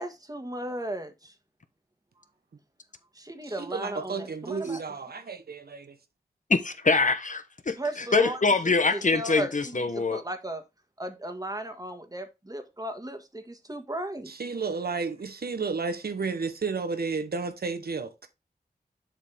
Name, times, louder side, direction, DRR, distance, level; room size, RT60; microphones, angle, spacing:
voice 1, 0.0-1.3 3.2-4.8 7.8-8.4 8.9-10.6 11.0-14.3, right 1 dB, 20° right, 1.6 m, -35 dB
voice 2, 3.4-6.0 14.3-18.3, right 4 dB, 65° right, 1.0 m, -32 dB
voice 3, 6.5-10.2, left 4 dB, 50° left, 1.0 m, -24 dB
7.3 x 5.3 x 3.4 m
cardioid pair, 45°, 17 cm